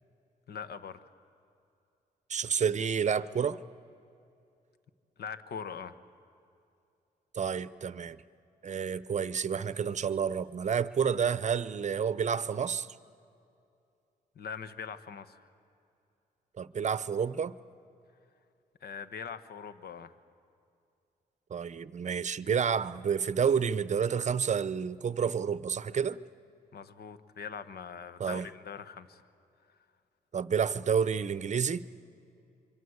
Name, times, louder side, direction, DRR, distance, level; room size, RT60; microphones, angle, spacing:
voice 1, 0.5-1.0 5.2-6.0 14.3-15.4 18.8-20.1 26.7-29.2, left 6 dB, 70° left, 1.2 m, -42 dB
voice 2, 2.3-3.6 7.3-8.2 8.6-12.9 16.6-17.5 21.5-26.2 28.2-28.5 30.3-31.8, right 7 dB, 45° right, 0.7 m, -29 dB
26.0 x 24.0 x 8.1 m
cardioid pair, 90°, 17 cm